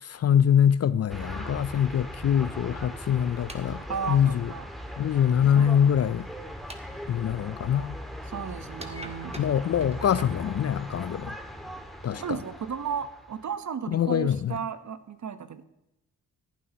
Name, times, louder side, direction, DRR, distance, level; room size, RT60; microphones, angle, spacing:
voice 1, 0.0-3.8 4.1-4.5 5.0-6.3 7.1-8.0 9.4-11.3 12.0-12.4 13.9-14.5, left 9 dB, 40° left, 0.5 m, -24 dB
sound 1, 1.1-13.5, equal, ahead, 1.9 m, -39 dB
sound 2, 3.3-7.4 8.6-11.1, right 1 dB, 15° right, 1.6 m, -46 dB
voice 2, 3.9-4.7 5.6-5.7 8.3-9.4 12.2-15.6, right 6 dB, 45° right, 1.0 m, -34 dB
15.0 x 11.0 x 2.9 m
hypercardioid pair, 40°, 40 cm